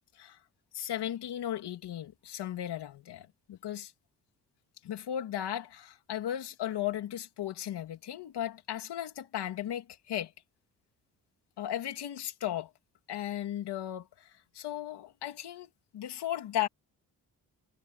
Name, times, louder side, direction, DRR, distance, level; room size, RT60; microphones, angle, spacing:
voice 1, 0.7-3.9 4.8-10.3 11.6-12.7 13.1-14.3 14.5-16.7, left 11 dB, 90° left, 3.0 m, -36 dB
cardioid pair, 65°, 39 cm